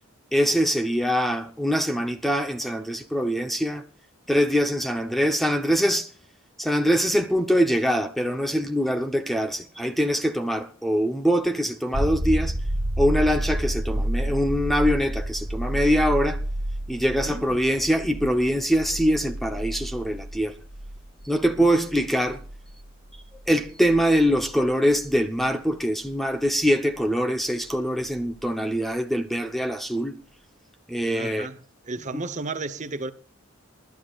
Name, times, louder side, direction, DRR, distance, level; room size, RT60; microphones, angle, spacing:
voice 1, 0.3-3.8 4.3-6.1 6.6-12.6 13.0-16.4 16.9-20.6 21.2-22.4 23.5-30.2 30.9-31.5, equal, ahead, 0.8 m, -23 dB
sound 1, 11.9-25.4 28.2-28.3, right 1 dB, 55° right, 1.5 m, -30 dB
voice 2, 17.2-17.6 21.6-21.8 31.1-31.6 31.8-33.1, right 3 dB, 35° right, 0.9 m, -33 dB
28.0 x 12.0 x 2.4 m
head